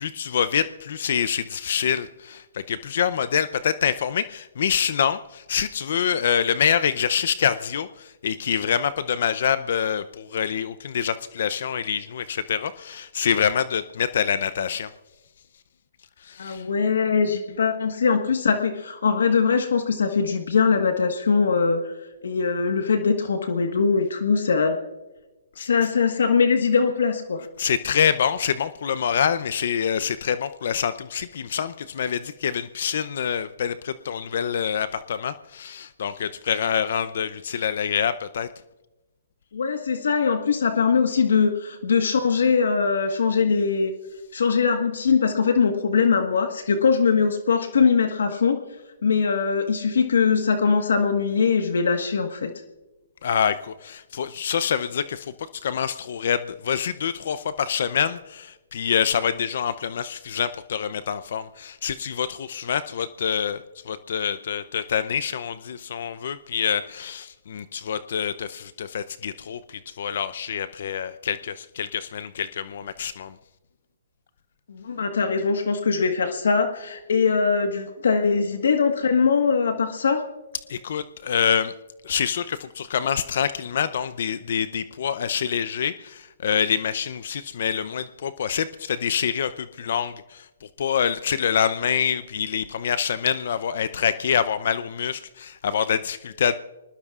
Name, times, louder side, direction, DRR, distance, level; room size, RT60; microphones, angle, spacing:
voice 1, 0.0-14.9 16.2-16.7 25.6-25.7 27.6-38.5 53.2-73.3 80.7-81.7 82.0-96.5, left 8 dB, 65° left, 14 dB, 0.6 m, -26 dB
voice 2, 16.4-21.9 22.2-24.8 25.6-27.5 39.5-43.9 44.3-48.6 49.0-52.5 74.7-80.2, left 5 dB, 80° left, 6 dB, 1.4 m, -21 dB
25.5 x 20.0 x 2.5 m, 1.1 s
hypercardioid pair, 145°, 0 cm